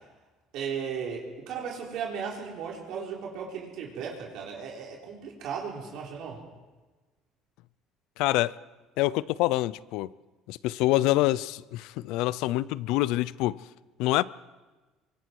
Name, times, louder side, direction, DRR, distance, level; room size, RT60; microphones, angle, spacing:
voice 1, 0.5-6.4, right 6 dB, 65° right, 4.4 m, -36 dB
voice 2, 8.2-8.6 9.0-10.1 10.5-13.6 14.0-14.2, left 17 dB, 80° left, 0.6 m, -26 dB
24.0 x 23.5 x 4.8 m
cardioid pair, 125°, 0 cm